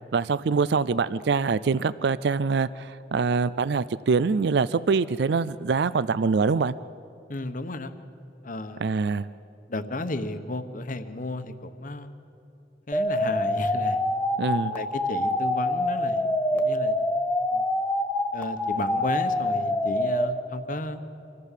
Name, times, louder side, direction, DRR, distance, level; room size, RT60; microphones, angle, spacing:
voice 1, 0.1-6.7 8.8-9.3 14.4-14.8, right 5 dB, 60° right, 17 dB, 0.4 m, -24 dB
voice 2, 7.3-7.9 8.4-8.9 9.7-12.2 12.9-14.0 14.7-17.0 17.5-17.6 18.3-21.0, left 2 dB, 45° left, 9 dB, 1.1 m, -33 dB
sound 1, 12.9-20.3, left 1 dB, 5° left, 1.7 m, -26 dB
25.5 x 15.0 x 7.4 m, 2.9 s
head